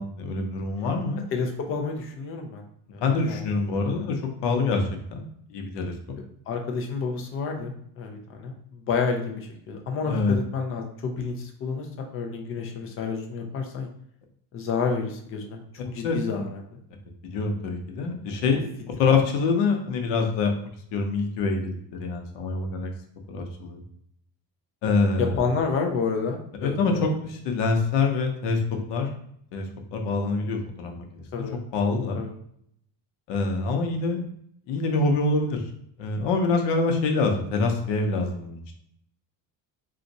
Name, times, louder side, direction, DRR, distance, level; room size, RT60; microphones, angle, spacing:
voice 1, 0.0-1.2 3.0-5.9 10.1-10.4 16.0-16.2 17.2-20.5 20.9-22.9 23.3-23.8 24.8-25.3 26.6-28.6 28.9-29.1 29.5-29.7 29.9-31.2 31.7-32.2 33.3-34.2 34.7-35.6 36.0-38.6, left 3 dB, 80° left, 3 dB, 0.8 m, -25 dB
voice 2, 1.3-2.6 2.9-3.9 6.5-13.9 14.5-16.8 18.4-18.6 25.2-27.1 31.3-31.6 32.2-32.3, left 5 dB, 35° left, 3 dB, 0.4 m, -30 dB
2.6 x 2.4 x 4.0 m, 0.69 s
cardioid pair, 180°, 42 cm